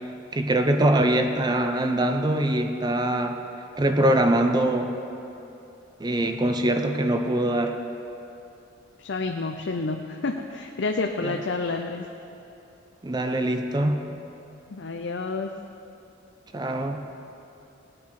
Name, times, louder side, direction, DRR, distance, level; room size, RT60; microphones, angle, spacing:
voice 1, 0.3-3.4 3.8-5.0 6.0-7.8 11.2-11.4 13.0-14.0 16.5-17.0, right 1 dB, 25° right, 5 dB, 0.6 m, -23 dB
voice 2, 9.0-12.1 14.7-15.6, left 3 dB, 70° left, 4 dB, 0.6 m, -29 dB
19.0 x 8.6 x 4.8 m, 2.9 s
head